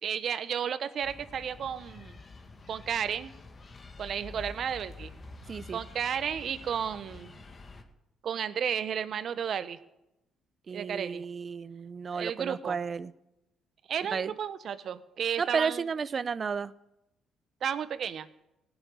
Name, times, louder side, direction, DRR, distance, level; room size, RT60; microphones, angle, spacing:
voice 1, 0.0-2.2 2.7-3.3 4.0-5.1 5.7-7.3 8.2-9.8 10.7-11.2 12.1-12.8 13.9-15.8 17.6-18.3, right 8 dB, 55° right, 13 dB, 1.0 m, -33 dB
sound 1, 1.0-7.8, left 3 dB, 35° left, 2.1 m, -48 dB
voice 2, 5.5-5.8 10.7-13.1 14.1-14.3 15.4-16.7, right 5 dB, 40° right, 17 dB, 0.7 m, -32 dB
17.5 x 7.1 x 9.7 m, 0.88 s
cardioid pair, 90°, 0 cm